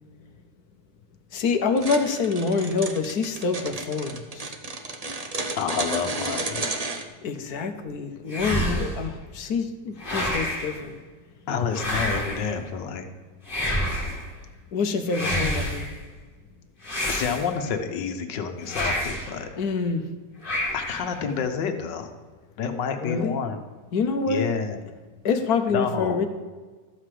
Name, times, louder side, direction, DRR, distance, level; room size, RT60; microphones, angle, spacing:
voice 1, 1.3-4.5 7.2-11.0 14.7-15.9 19.6-20.0 23.0-23.4 23.9-24.5 25.2-26.3, left 4 dB, 65° left, 7 dB, 1.3 m, -26 dB
sound 1, 1.8-7.0, right 3 dB, 35° right, 0.6 m, -32 dB
voice 2, 5.6-6.8 11.5-13.1 17.1-19.5 20.7-22.1 22.6-23.6 24.3-24.8 25.7-26.2, left 6 dB, 90° left, 7 dB, 1.6 m, -29 dB
Tonal Whoosh, 8.3-9.1 10.0-10.8 11.7-12.5 13.5-14.2 15.1-15.9 16.8-17.7 18.6-19.3 20.4-21.1, equal, 30° left, 2.5 m, -28 dB
13.0 x 4.9 x 7.6 m, 1.4 s
omnidirectional pair, 1.8 m